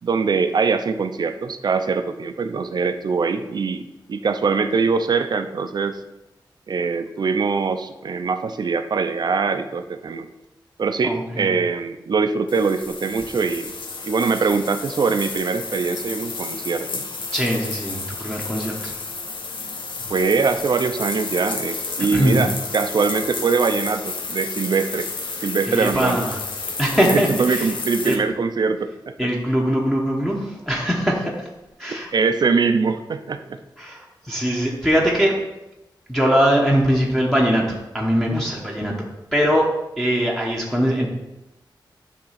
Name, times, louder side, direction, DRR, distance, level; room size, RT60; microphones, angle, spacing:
voice 1, 0.0-6.0 6.7-10.3 10.8-13.7 14.0-17.0 20.1-25.1 25.4-26.2 27.0-29.1 31.9-33.6, right 5 dB, 55° right, 9 dB, 0.6 m, -22 dB
voice 2, 11.0-11.5 17.3-18.9 22.0-22.4 25.7-26.4 26.8-27.7 28.0-28.3 29.2-31.5 31.8-32.1 33.8-35.4 36.1-38.9 39.3-39.7 40.0-41.1, equal, 5° left, -4 dB, 1.0 m, -21 dB
sound 1, 12.5-28.2, left 4 dB, 75° left, 1.1 m, -31 dB
10.5 x 3.6 x 5.8 m, 0.95 s
wide cardioid pair, 165°, 8 cm